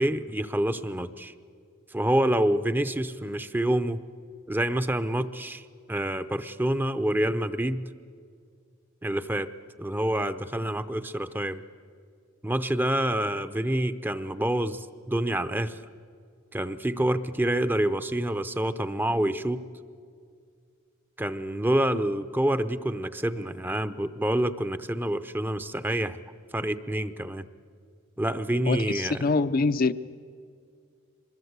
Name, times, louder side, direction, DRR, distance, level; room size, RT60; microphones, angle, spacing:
voice 1, 0.0-1.3 1.9-4.0 4.5-7.8 9.0-11.6 12.4-15.8 16.5-19.6 21.2-26.2 26.5-27.5 28.2-29.2, right 1 dB, 10° right, 0.6 m, -27 dB
voice 2, 28.7-29.9, left 3 dB, 45° left, 0.5 m, -24 dB
24.0 x 21.5 x 8.1 m
head